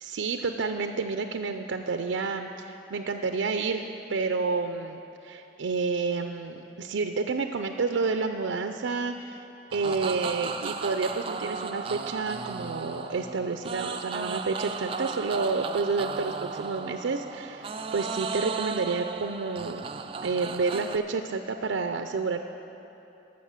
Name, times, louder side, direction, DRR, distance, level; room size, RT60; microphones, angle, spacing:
voice 1, 0.0-19.9 20.2-22.4, right 4 dB, 85° right, 6 dB, 0.4 m, -30 dB
sound 1, 9.7-21.0, right 5 dB, 30° right, 0.3 m, -35 dB
13.0 x 6.2 x 7.4 m, 2.9 s
head